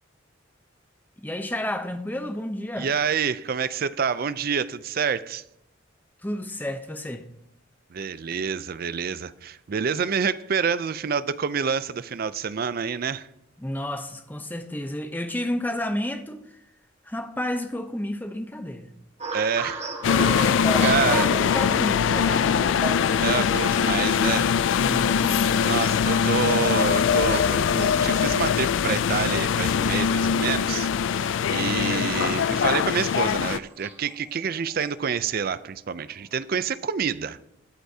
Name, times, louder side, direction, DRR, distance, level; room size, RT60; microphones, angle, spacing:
voice 1, 1.2-2.9 6.2-7.3 13.6-16.6 17.0-18.9 20.1-22.9 24.7-25.5, left 1 dB, 10° left, 0.7 m, -31 dB
voice 2, 2.8-5.4 7.9-13.3 19.3-19.9 20.3-20.5 20.8-21.3 23.2-24.5 25.6-37.4, right 6 dB, 50° right, 0.4 m, -27 dB
sound 1, 19.2-35.7 36.3-36.6, right 3 dB, 35° right, 1.6 m, -40 dB
sound 2, 20.0-33.6, left 7 dB, 75° left, 0.3 m, -22 dB
18.5 x 8.1 x 2.8 m
head